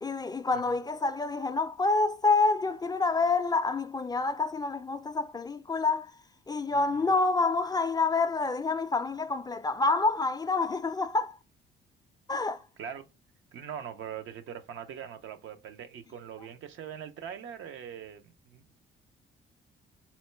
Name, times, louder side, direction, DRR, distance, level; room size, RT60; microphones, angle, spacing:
voice 1, 0.0-6.1 6.5-11.4 12.3-12.6, left 3 dB, 20° left, 0.4 m, -27 dB
voice 2, 6.7-7.1 12.8-13.1 13.5-18.6, right 8 dB, 75° right, 0.7 m, -42 dB
4.3 x 2.2 x 4.3 m
cardioid pair, 90°, 20 cm